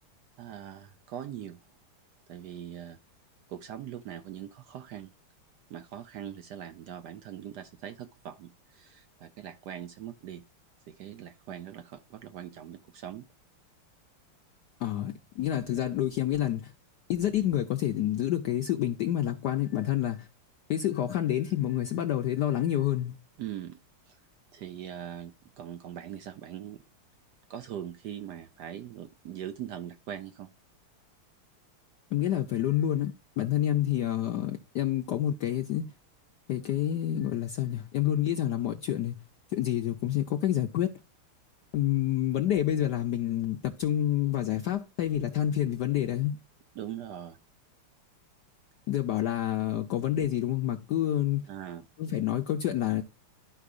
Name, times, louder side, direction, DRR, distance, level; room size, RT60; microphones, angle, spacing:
voice 1, 0.4-1.6 2.3-3.0 3.5-5.1 5.7-10.4 10.9-13.2 23.4-23.8 24.1-24.2 24.5-26.8 27.5-30.5 46.8-47.4 51.5-51.9, right 10 dB, 80° right, 0.9 m, -41 dB
voice 2, 14.8-16.7 17.1-20.3 20.7-23.2 32.1-35.9 36.5-39.2 39.5-40.9 41.7-46.4 48.9-51.4 52.0-53.0, left 12 dB, 75° left, 1.0 m, -28 dB
13.0 x 4.8 x 2.4 m
omnidirectional pair, 2.4 m